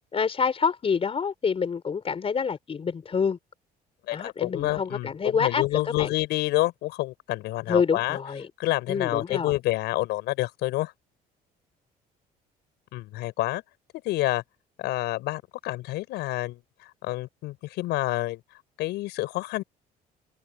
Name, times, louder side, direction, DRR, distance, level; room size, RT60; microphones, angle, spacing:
voice 1, 0.1-3.4 4.1-6.1 7.7-8.5 8.9-9.5, left 6 dB, 35° left, 4.5 m, -27 dB
voice 2, 4.1-8.2 8.6-10.9 12.9-13.6 14.0-14.4 14.8-16.6 17.0-18.4 18.8-19.6, left 17 dB, 85° left, 7.0 m, -28 dB
cardioid pair, 110°, 17 cm